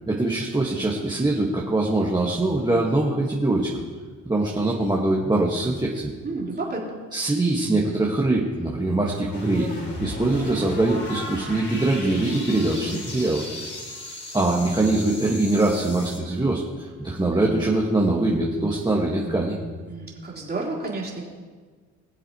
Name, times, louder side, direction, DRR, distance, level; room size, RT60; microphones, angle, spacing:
voice 1, 0.1-3.7 4.2-6.1 7.1-13.4 14.3-19.6, right 2 dB, 15° right, -3 dB, 1.6 m, -23 dB
voice 2, 6.2-7.0 19.9-21.2, right 2 dB, 30° right, -4 dB, 3.8 m, -30 dB
sound 1, 9.3-16.2, left 1 dB, 35° left, 3.6 m, -35 dB
22.5 x 7.6 x 3.1 m, 1.5 s
cardioid pair, 85°, 31 cm